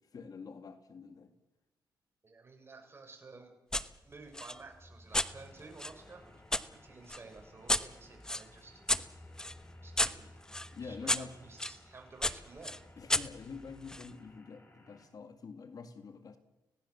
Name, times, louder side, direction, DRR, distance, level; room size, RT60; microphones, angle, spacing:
voice 1, 0.1-1.3 10.7-11.3 13.0-16.4, left 5 dB, 55° left, 8 dB, 2.1 m, -46 dB
voice 2, 2.2-3.5 4.0-6.4 6.7-8.8 9.8-10.3 10.8-12.8, right 3 dB, 30° right, 3 dB, 6.7 m, -52 dB
sound 1, 3.7-3.9 4.3-6.7 7.1-11.8 12.2-14.1, left 1 dB, 10° left, 1.0 m, -34 dB
sound 2, 5.1-15.1, left 1 dB, 30° left, 6.3 m, -61 dB
25.5 x 17.5 x 7.1 m, 0.97 s
cardioid pair, 95°, 8 cm